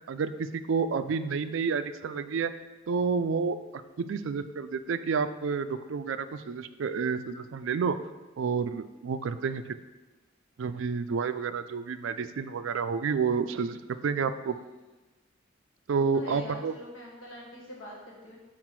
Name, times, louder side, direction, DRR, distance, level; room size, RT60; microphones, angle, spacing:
voice 1, 0.1-2.5 2.9-3.6 4.0-8.0 8.4-9.8 10.6-14.6 15.9-16.7, right 5 dB, 70° right, 11 dB, 0.4 m, -29 dB
voice 2, 16.0-18.4, left 1 dB, 75° left, -3 dB, 1.3 m, -44 dB
5.8 x 4.4 x 4.6 m, 1.1 s
head